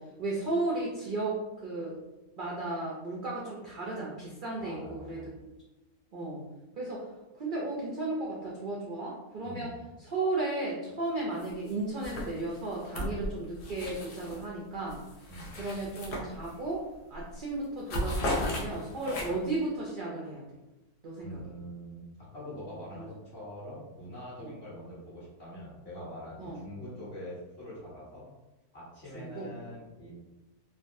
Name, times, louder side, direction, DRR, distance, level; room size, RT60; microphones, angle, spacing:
voice 1, 0.0-2.0 2.4-5.5 6.1-6.4 6.8-7.0 7.4-15.0 15.6-20.4 21.0-21.4 22.9-23.0 24.4-24.5 26.4-26.6 29.1-29.5, right 2 dB, 80° right, -4 dB, 0.4 m, -34 dB
voice 2, 4.6-5.4 9.4-9.8 15.3-15.5 21.2-28.3 28.7-30.2, equal, 45° left, -9 dB, 1.3 m, -44 dB
sound 1, 11.4-11.7 12.0-14.5 14.9-16.8 17.1-17.4 17.6-19.6, left 1 dB, 65° left, 0.9 m, -36 dB
3.4 x 2.2 x 2.6 m, 1.0 s
omnidirectional pair, 1.6 m